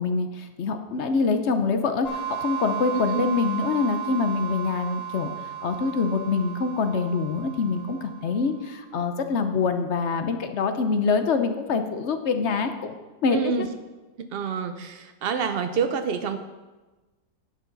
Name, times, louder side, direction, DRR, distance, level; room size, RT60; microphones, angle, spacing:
voice 1, 0.0-5.3 5.6-13.0 13.2-13.7, left 4 dB, 55° left, 8 dB, 0.9 m, -25 dB
sound 1, 2.1-8.6, right 9 dB, 80° left, 2.5 m, -34 dB
voice 2, 13.3-13.7 14.2-16.4, right 6 dB, 80° right, 8 dB, 0.5 m, -28 dB
11.0 x 8.5 x 3.9 m, 1.2 s
omnidirectional pair, 1.7 m